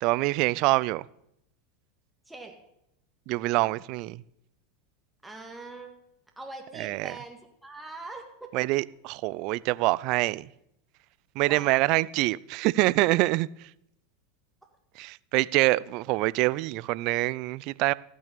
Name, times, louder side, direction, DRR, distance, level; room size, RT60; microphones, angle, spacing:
voice 1, 0.0-1.0 3.3-4.2 6.8-7.1 8.5-10.5 11.4-13.5 15.0-17.9, right 20 dB, 55° right, 0.4 m, -25 dB
voice 2, 2.3-2.6 5.2-5.9 6.4-8.7 11.4-11.8, right 2 dB, 5° right, 1.8 m, -42 dB
15.0 x 6.2 x 6.8 m
hypercardioid pair, 95°, 0 cm